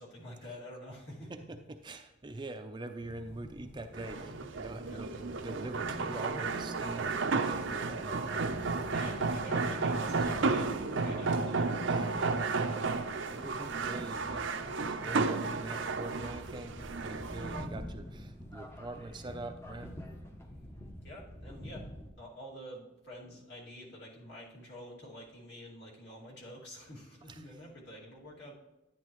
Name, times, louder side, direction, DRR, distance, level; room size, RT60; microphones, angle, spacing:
voice 1, 0.0-1.4 4.8-5.0 8.9-12.9 13.5-14.4 21.0-21.9 22.2-28.5, equal, 60° left, -4 dB, 2.4 m, -49 dB
voice 2, 1.3-8.9 10.5-10.6 11.1-11.2 11.8-12.1 13.3-14.5 15.0-19.9 27.3-27.4, right 2 dB, 25° right, 7 dB, 0.5 m, -44 dB
sound 1, 3.0-22.1, equal, 15° left, 0.7 m, -48 dB
sound 2, 3.9-17.7, right 4 dB, 70° right, 0.6 m, -33 dB
10.5 x 10.0 x 3.1 m, 0.98 s
head